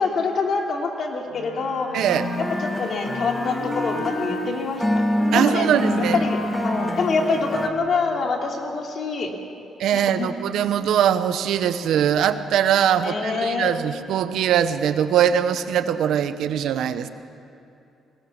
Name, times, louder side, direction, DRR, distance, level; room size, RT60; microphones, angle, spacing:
voice 1, 0.0-2.0 2.4-4.8 5.3-5.7 6.0-9.3 9.9-10.3 12.8-13.7, left 4 dB, 55° left, 1 dB, 3.2 m, -26 dB
Wind instrument woodwind instrument, 1.3-4.5 5.2-7.9, left 2 dB, 85° left, 5.3 m, -32 dB
voice 2, 1.9-2.2 5.3-6.2 9.8-17.1, right 9 dB, 80° right, 11 dB, 1.0 m, -21 dB
sound 1, 2.1-7.7, equal, 5° left, 1.7 m, -27 dB
21.5 x 17.5 x 7.2 m, 2.8 s
cardioid pair, 90°, 0 cm